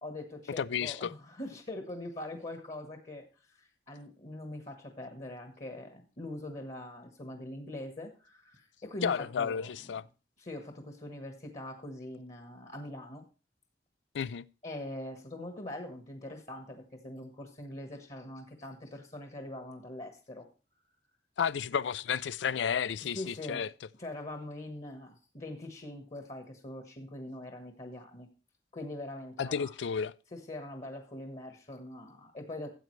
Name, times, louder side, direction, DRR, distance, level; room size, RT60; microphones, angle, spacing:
voice 1, 0.0-10.0 10.4-13.2 14.6-20.5 23.1-23.6 24.0-28.3 28.7-29.7 30.3-32.7, left 1 dB, 40° left, 1.4 m, -43 dB
voice 2, 0.6-1.1 9.0-10.0 14.1-14.5 21.4-23.7 29.4-30.1, left 7 dB, 90° left, 0.4 m, -32 dB
14.0 x 8.1 x 3.2 m
head